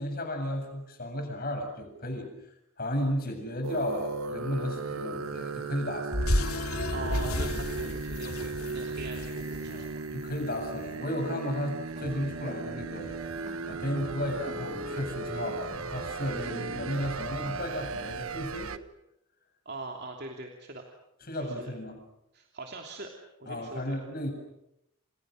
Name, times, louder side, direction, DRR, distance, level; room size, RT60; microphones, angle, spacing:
voice 1, 0.0-2.3 2.8-6.3 9.7-13.2 13.7-18.7 21.3-22.0 23.5-24.3, equal, 45° left, 5 dB, 7.5 m, -34 dB
sound 1, 3.6-18.8, right 3 dB, 75° right, 1.3 m, -37 dB
sound 2, 6.1-10.5, left 1 dB, 90° left, 2.7 m, -32 dB
voice 2, 6.9-10.1 16.4-16.6 19.6-20.8 21.3-21.7 22.3-23.1 23.4-24.0, right 2 dB, 50° right, 1 dB, 3.0 m, -42 dB
sound 3, 11.9-17.7, right 2 dB, 35° right, 2.6 m, -44 dB
29.0 x 28.5 x 6.5 m, 0.83 s
head